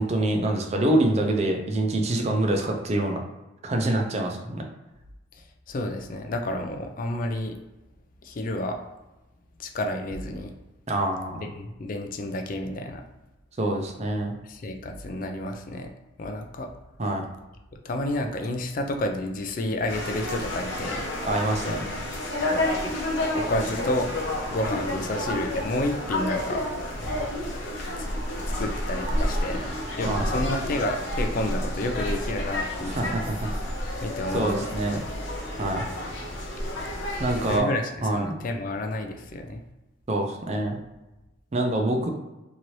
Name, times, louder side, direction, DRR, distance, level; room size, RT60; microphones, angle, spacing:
voice 1, 0.0-3.2 3.6-4.7 10.9-11.5 13.6-14.3 17.0-17.2 21.2-21.8 30.0-30.3 32.9-33.5 34.3-35.0 35.6-35.9 37.2-37.7 38.0-38.4 40.1-40.8 41.5-42.1, right 1 dB, 30° right, 2 dB, 0.4 m, -25 dB
voice 2, 5.7-7.6 8.2-8.8 9.6-10.5 11.4-13.0 14.4-15.9 16.2-16.7 17.8-21.0 21.6-21.8 22.4-22.7 23.3-24.1 24.5-26.6 28.0-28.1 28.4-29.7 30.0-33.2 34.0-34.6 34.9-35.0 37.5-37.8 38.1-39.6, left 1 dB, 40° left, 4 dB, 0.3 m, -30 dB
sound 1, 19.9-37.6, left 1 dB, 65° left, 0.7 m, -30 dB
2.8 x 2.6 x 3.1 m, 1.0 s
head